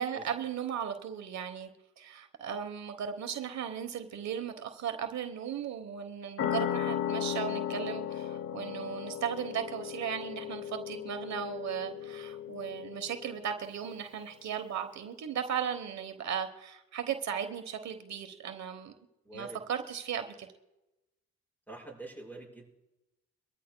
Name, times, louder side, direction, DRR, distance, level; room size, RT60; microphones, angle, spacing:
voice 1, 0.0-1.7 2.0-18.9 19.3-20.5, right 8 dB, 65° right, 1.2 m, -36 dB
sound 1, 6.4-13.6, left 10 dB, 55° left, 0.9 m, -36 dB
voice 2, 19.2-19.6 21.7-22.7, right 2 dB, 5° left, 5.7 m, -45 dB
24.0 x 14.0 x 2.3 m
cardioid pair, 90°, 30 cm